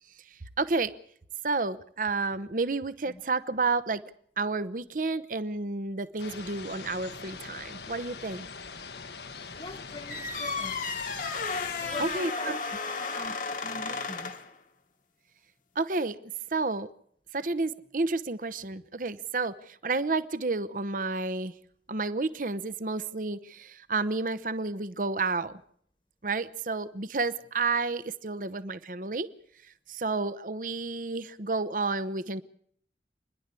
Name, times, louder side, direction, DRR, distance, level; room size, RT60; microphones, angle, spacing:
voice 1, 0.6-0.9 1.4-4.0 4.4-8.5 12.0-12.8 15.8-16.2 16.5-16.9 17.3-21.5 21.9-25.6 26.2-29.3 29.9-32.4, right 3 dB, 50° right, 0.8 m, -30 dB
sound 1, 6.2-12.2, left 5 dB, 70° left, 1.2 m, -42 dB
voice 2, 9.6-11.0 11.8-14.4, left 1 dB, 25° left, 1.4 m, -43 dB
sound 2, 10.1-14.5, left 4 dB, 50° left, 1.4 m, -33 dB
28.5 x 11.0 x 8.3 m
head